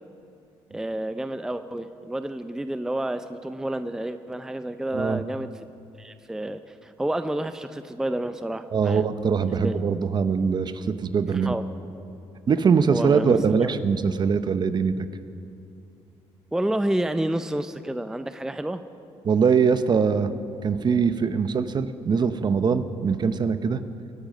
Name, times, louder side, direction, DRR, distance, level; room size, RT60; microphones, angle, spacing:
voice 1, 0.7-5.5 6.0-9.0 9.5-9.8 11.3-11.6 12.9-13.7 16.5-18.8, right 1 dB, 5° right, 10 dB, 0.5 m, -29 dB
voice 2, 8.7-11.5 12.5-15.1 19.2-20.3 20.6-23.8, right 6 dB, 40° right, 12 dB, 0.8 m, -22 dB
24.0 x 9.0 x 5.4 m, 2.6 s
cardioid pair, 85°, 11 cm